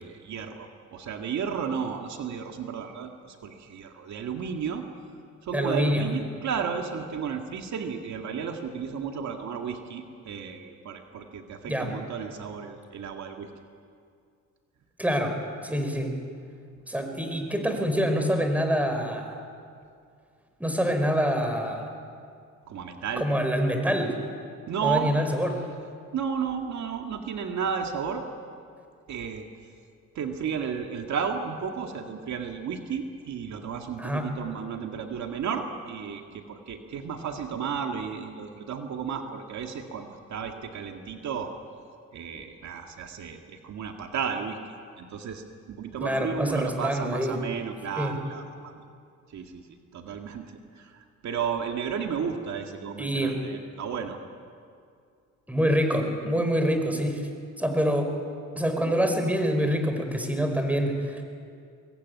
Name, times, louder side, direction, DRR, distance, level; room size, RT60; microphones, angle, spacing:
voice 1, 0.0-4.9 5.4-13.5 22.7-23.3 24.7-25.1 26.1-28.2 29.1-29.5 30.2-41.5 42.1-44.6 45.0-48.7 49.3-49.6 49.9-54.2, right 7 dB, 65° right, 4 dB, 2.1 m, -33 dB
voice 2, 5.5-6.1 11.6-11.9 15.0-15.4 15.6-16.2 16.9-19.3 20.6-21.9 23.2-24.1 24.8-25.6 34.0-34.3 46.0-47.4 48.0-48.1 53.0-53.4 55.5-57.2 57.6-58.1 58.5-61.2, equal, 5° right, 5 dB, 4.9 m, -26 dB
24.0 x 21.5 x 9.6 m, 2.3 s
cardioid pair, 90°, 30 cm